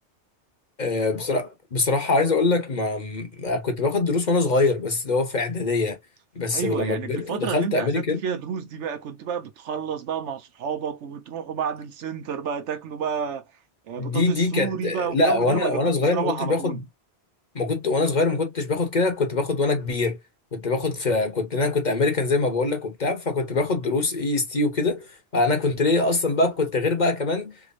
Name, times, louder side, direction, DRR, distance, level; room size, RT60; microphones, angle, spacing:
voice 1, 0.8-6.0 6.3-8.2 14.0-16.8 17.5-20.2 20.5-25.1 25.3-27.5, left 3 dB, 40° left, 1.0 m, -23 dB
voice 2, 6.5-13.4 13.9-16.8, right 7 dB, 85° right, 1.1 m, -30 dB
3.5 x 3.1 x 2.5 m
omnidirectional pair, 1.2 m